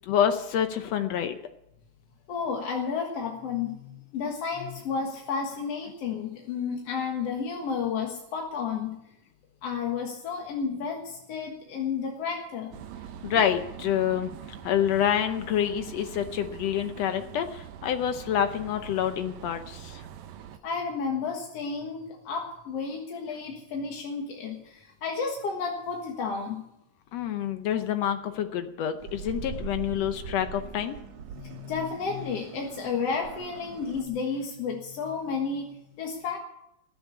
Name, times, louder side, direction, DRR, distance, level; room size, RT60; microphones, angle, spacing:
voice 1, 0.0-1.4 13.2-14.3 14.6-20.0 27.1-31.0, left 9 dB, 80° left, 8 dB, 1.5 m, -27 dB
voice 2, 2.3-9.0 9.6-12.7 20.6-26.6 31.3-36.4, left 5 dB, 55° left, 0 dB, 2.2 m, -32 dB
sound 1, 12.7-20.6, right 9 dB, 85° right, 2.8 m, -44 dB
sound 2, 29.0-34.0, right 7 dB, 60° right, 2.1 m, -41 dB
20.0 x 7.6 x 8.4 m, 0.84 s
omnidirectional pair, 4.0 m